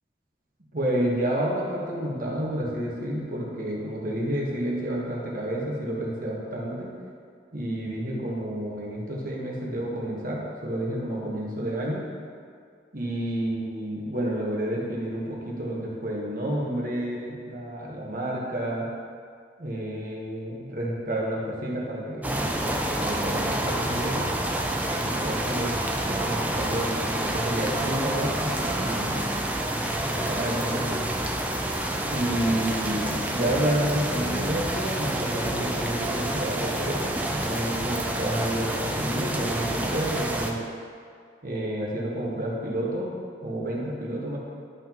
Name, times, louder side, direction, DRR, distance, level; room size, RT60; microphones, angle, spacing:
voice 1, 0.7-6.9 7.5-12.0 12.9-18.9 19.6-24.3 25.0-25.7 26.0-29.2 30.1-31.0 32.1-40.6 41.4-44.4, right 1 dB, 45° right, -4 dB, 1.4 m, -30 dB
sound 1, 22.2-40.5, right 1 dB, 10° right, 0.4 m, -28 dB
11.5 x 5.8 x 3.0 m, 2.1 s
head